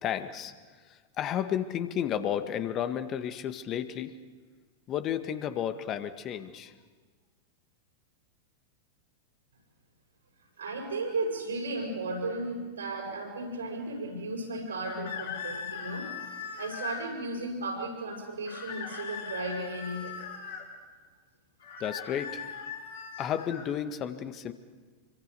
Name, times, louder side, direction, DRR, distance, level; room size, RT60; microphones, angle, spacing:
voice 1, 0.0-0.5 0.8-4.1 4.9-6.7 21.8-22.5 23.2-24.5, left 9 dB, 35° left, 9 dB, 1.8 m, -32 dB
voice 2, 10.6-16.1 16.6-20.2, right 2 dB, 80° right, -2 dB, 6.1 m, -35 dB
sound 1, 14.8-17.1 18.4-20.6 21.6-23.7, left 6 dB, 70° left, 6.2 m, -40 dB
26.0 x 24.5 x 7.0 m, 1.5 s
figure-of-eight pair, 90°, 0 cm